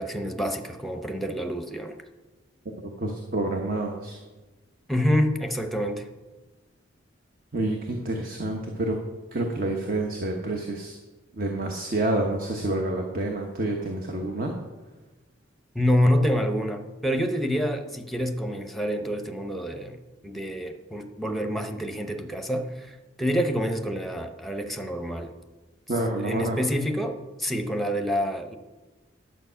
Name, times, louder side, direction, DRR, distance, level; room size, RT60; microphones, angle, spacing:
voice 1, 0.0-2.0 4.9-6.1 15.7-25.3 26.2-28.6, equal, ahead, 6 dB, 0.8 m, -27 dB
voice 2, 2.8-4.2 7.5-9.0 9.3-11.0 11.3-14.5 25.9-26.6, right 2 dB, 50° right, 2 dB, 1.1 m, -28 dB
11.0 x 7.5 x 5.7 m, 1.2 s
head